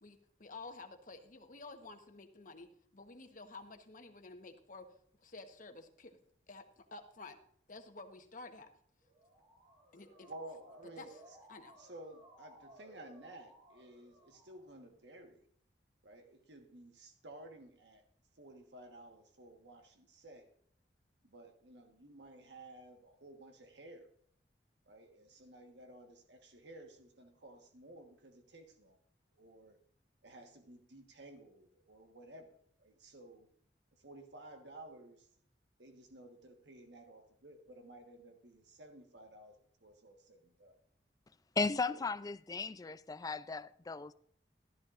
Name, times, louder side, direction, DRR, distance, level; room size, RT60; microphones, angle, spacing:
voice 1, 0.0-4.9 5.2-6.2 6.5-7.4 7.7-8.7 9.9-10.3 11.0-11.1 11.5-11.7, left 3 dB, 50° left, 1.1 m, -51 dB
Motor vehicle (road) / Siren, 9.0-14.9, right 1 dB, 40° right, 3.6 m, -60 dB
voice 2, 9.9-11.4 11.8-15.4 16.0-18.0 18.3-20.5 21.2-24.1 24.8-29.0 29.3-29.8 30.2-33.5 34.0-35.3 35.8-40.8 41.8-42.1, right 1 dB, 85° right, 1.3 m, -54 dB
voice 3, 41.6-44.1, left 4 dB, 20° left, 0.4 m, -36 dB
14.5 x 12.5 x 2.5 m
head